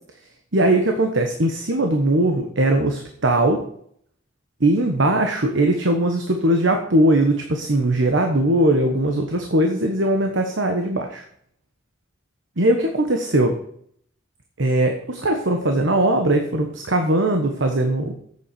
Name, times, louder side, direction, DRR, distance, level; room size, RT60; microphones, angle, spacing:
voice 1, 0.5-3.6 4.6-11.2 12.6-13.6 14.6-18.1, right 1 dB, 60° right, 4 dB, 1.2 m, -20 dB
8.5 x 7.3 x 6.8 m, 0.66 s
head